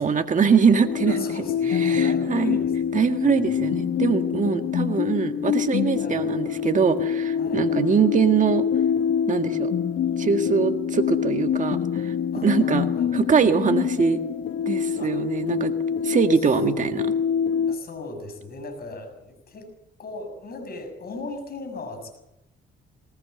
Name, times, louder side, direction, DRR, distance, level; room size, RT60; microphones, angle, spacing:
voice 1, 0.0-1.3 1.8-2.6 2.9-8.7 9.3-9.7 10.2-12.1 12.4-12.9 13.1-14.2 14.7-15.7 16.0-17.1, right 6 dB, 40° right, 6 dB, 1.8 m, -22 dB
sound 1, 0.8-17.8, left 8 dB, 75° left, 1.1 m, -25 dB
voice 2, 1.0-3.7 6.0-6.3 7.3-7.7 12.3-13.1 15.0-15.1 16.0-16.1 17.7-19.7 20.0-22.2, left 3 dB, 50° left, 7 dB, 6.5 m, -38 dB
20.5 x 19.5 x 7.9 m, 0.88 s
cardioid pair, 90°, 20 cm